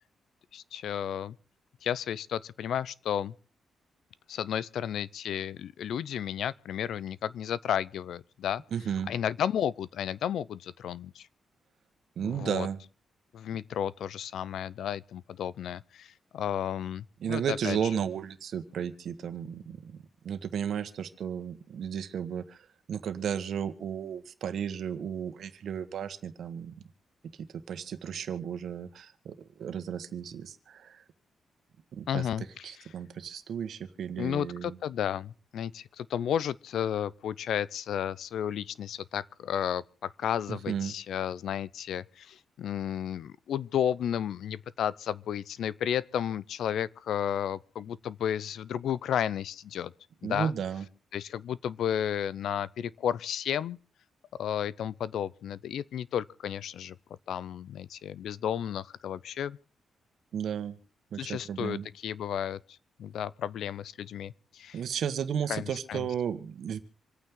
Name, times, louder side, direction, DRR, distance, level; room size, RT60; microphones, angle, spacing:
voice 1, 0.5-1.4 1.8-3.3 4.3-8.6 9.1-11.3 12.2-12.7 13.3-17.8 32.1-32.7 34.2-49.9 50.2-50.5 51.1-53.8 54.4-57.0 57.3-59.6 61.2-62.6 63.0-64.8 65.5-66.1, left 9 dB, 80° left, 0.6 m, -33 dB
voice 2, 8.7-9.1 12.2-12.8 17.2-20.0 20.2-22.6 22.9-26.7 27.7-31.0 31.9-34.8 40.5-40.9 50.2-50.8 60.3-60.8 61.1-61.9 64.7-66.8, right 8 dB, 70° right, 1.5 m, -34 dB
27.0 x 9.1 x 3.8 m
cardioid pair, 105°, 0 cm